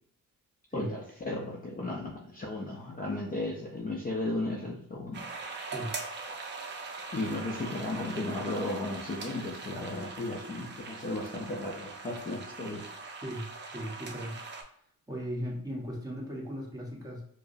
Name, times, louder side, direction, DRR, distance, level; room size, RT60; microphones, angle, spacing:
voice 1, 0.7-5.3 7.1-12.8, left 2 dB, 25° left, -2 dB, 0.5 m, -35 dB
sound 1, 5.1-14.6, right 4 dB, 35° right, 0.6 m, -41 dB
voice 2, 5.7-6.0 13.2-14.3 15.1-17.2, equal, 10° right, -3 dB, 1.1 m, -37 dB
4.8 x 2.0 x 2.6 m, 0.64 s
cardioid pair, 105°, 32 cm